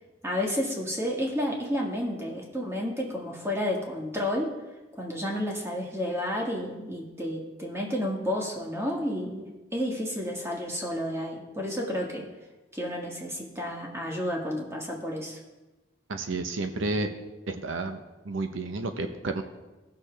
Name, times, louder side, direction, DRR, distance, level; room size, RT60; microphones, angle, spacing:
voice 1, 0.2-4.5 4.9-12.3 12.7-15.4, left 1 dB, 15° right, -1 dB, 1.7 m, -31 dB
voice 2, 16.1-17.1 17.5-18.0 18.2-19.4, right 2 dB, 80° right, 7 dB, 0.7 m, -31 dB
17.0 x 6.5 x 3.3 m, 1.1 s
head